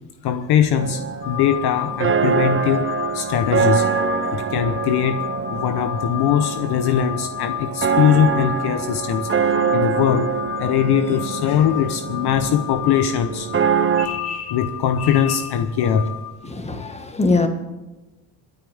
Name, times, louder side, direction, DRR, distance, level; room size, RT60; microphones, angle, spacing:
voice 1, 0.2-4.0 4.3-13.6 14.0-16.2, left 8 dB, 50° left, 8 dB, 1.1 m, -21 dB
sound 1, 0.8-14.1, right 7 dB, 25° right, 0.9 m, -24 dB
sound 2, 1.2-16.3, left 14 dB, 70° left, 6.2 m, -32 dB
voice 2, 16.4-17.5, left 3 dB, 15° left, 6 dB, 1.8 m, -22 dB
27.0 x 9.3 x 3.6 m, 1.1 s
supercardioid pair, 95°, 49 cm